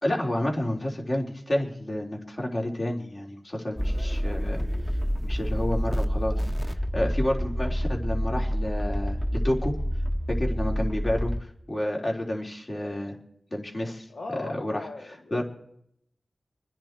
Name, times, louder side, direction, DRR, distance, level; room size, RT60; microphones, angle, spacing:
voice 1, 0.0-4.6 5.2-9.8 10.4-11.3 11.7-13.2 13.5-14.0 14.6-14.7 15.3-15.4, left 1 dB, 45° left, 0 dB, 3.7 m, -30 dB
sound 1, 3.8-11.4, equal, 20° left, 1.2 m, -28 dB
voice 2, 13.8-15.4, left 3 dB, 80° left, 1 dB, 1.4 m, -39 dB
27.0 x 10.5 x 4.6 m, 0.69 s
cardioid pair, 50°, 0 cm